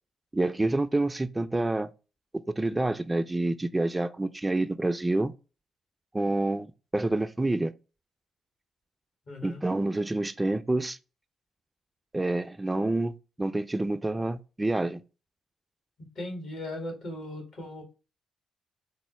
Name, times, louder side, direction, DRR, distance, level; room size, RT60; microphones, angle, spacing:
voice 1, 0.3-1.9 2.3-5.3 6.1-6.7 6.9-7.7 9.4-11.0 12.1-15.0, right 2 dB, 20° right, 0.3 m, -28 dB
voice 2, 9.3-9.6 16.1-17.8, left 1 dB, 65° left, 1.6 m, -38 dB
4.0 x 2.0 x 2.9 m
hypercardioid pair, 50°, 0 cm